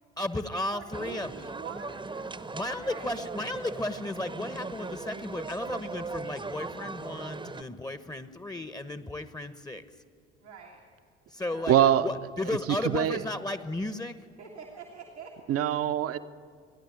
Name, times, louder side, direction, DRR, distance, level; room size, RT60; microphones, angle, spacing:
voice 1, 0.2-1.3 2.5-9.8 11.3-11.8 12.0-14.2, left 1 dB, 10° left, 11 dB, 1.1 m, -34 dB
voice 2, 0.7-3.2 10.4-10.8 11.4-11.7 14.4-15.4, right 6 dB, 85° right, -3 dB, 1.9 m, -46 dB
sound 1, 0.9-7.6, right 3 dB, 15° right, 1.0 m, -39 dB
voice 3, 11.7-12.1 12.5-13.3 15.5-16.2, right 11 dB, 45° right, 11 dB, 1.0 m, -24 dB
28.0 x 11.0 x 9.4 m, 2.3 s
figure-of-eight pair, 55°, 33 cm